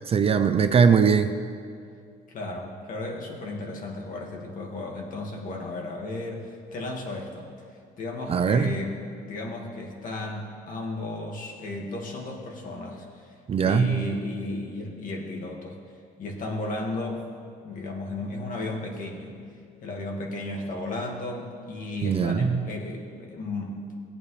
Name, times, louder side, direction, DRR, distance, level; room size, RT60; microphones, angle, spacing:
voice 1, 0.1-1.3 8.3-8.7 13.5-14.0 22.0-22.7, right 6 dB, 35° right, 9 dB, 0.5 m, -21 dB
voice 2, 2.3-7.5 8.0-9.0 9.2-15.8 16.2-17.2 17.6-19.4 19.8-23.9, left 2 dB, 50° left, 0 dB, 2.0 m, -34 dB
17.0 x 8.7 x 3.3 m, 2.3 s
cardioid pair, 110°, 17 cm